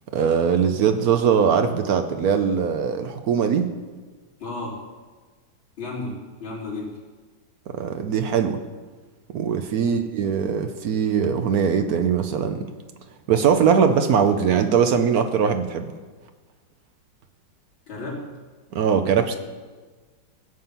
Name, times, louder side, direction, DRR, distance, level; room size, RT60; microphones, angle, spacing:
voice 1, 0.1-3.7 7.7-8.6 9.3-12.6 13.3-15.9 18.7-19.4, right 7 dB, 65° right, 8 dB, 1.0 m, -21 dB
voice 2, 4.4-4.8 5.8-7.0 9.8-10.1 17.9-18.3, left 2 dB, 80° left, -6 dB, 3.9 m, -33 dB
15.5 x 7.5 x 5.5 m, 1.4 s
omnidirectional pair, 2.2 m